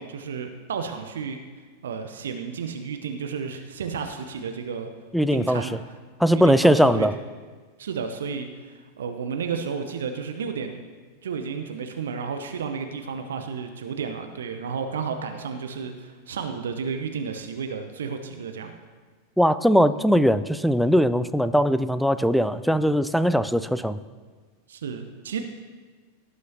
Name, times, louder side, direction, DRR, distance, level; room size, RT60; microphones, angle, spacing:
voice 1, 0.0-1.4 1.8-4.9 5.3-5.8 6.3-7.1 7.8-10.8 11.2-18.7 24.7-25.4, right 6 dB, 65° right, 6 dB, 0.8 m, -32 dB
voice 2, 5.1-5.7 6.2-7.1 19.4-24.0, equal, ahead, 13 dB, 0.4 m, -20 dB
17.5 x 9.5 x 2.8 m, 1.5 s
figure-of-eight pair, 90°, 0 cm